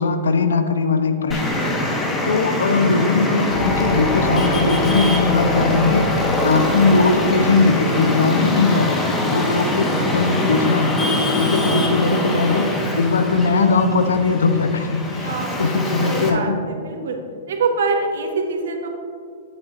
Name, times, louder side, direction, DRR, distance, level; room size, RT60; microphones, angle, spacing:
voice 1, 0.0-1.7 2.2-6.1 6.4-12.7 13.0-16.6, left 4 dB, 85° left, 8 dB, 0.6 m, -20 dB
Traffic noise roadway noise, 1.3-16.3, left 1 dB, 20° left, 1.3 m, -23 dB
sound 1, 3.5-8.9, left 2 dB, 55° left, 1.1 m, -26 dB
voice 2, 15.2-15.7 16.0-17.1 17.5-18.9, right 4 dB, 75° right, 3 dB, 1.2 m, -24 dB
9.4 x 9.1 x 2.5 m, 2.3 s
hypercardioid pair, 110°, 0 cm